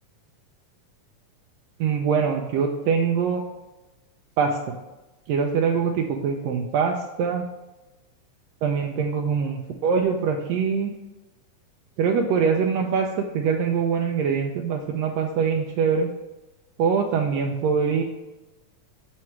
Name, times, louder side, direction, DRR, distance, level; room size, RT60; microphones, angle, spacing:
voice 1, 1.8-3.4 4.4-4.7 5.3-7.4 8.6-10.9 12.0-16.1 16.8-18.0, right 6 dB, 80° right, 2 dB, 1.5 m, -23 dB
7.1 x 4.7 x 4.5 m, 1.1 s
omnidirectional pair, 3.5 m